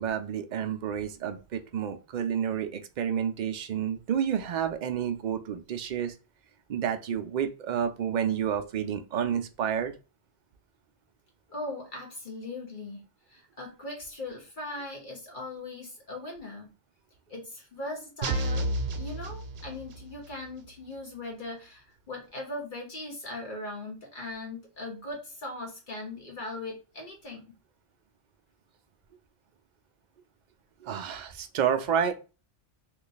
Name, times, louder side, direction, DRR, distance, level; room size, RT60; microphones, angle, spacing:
voice 1, 0.0-6.1 6.7-9.9 30.8-32.1, right 8 dB, 55° right, 8 dB, 0.5 m, -30 dB
voice 2, 11.5-13.0 13.3-16.7 17.3-18.7 19.0-27.4, left 2 dB, 50° left, 0 dB, 1.1 m, -39 dB
sound 1, 18.2-20.1, right 1 dB, 75° right, 0.9 m, -31 dB
3.1 x 2.5 x 3.9 m, 0.32 s
omnidirectional pair, 1.1 m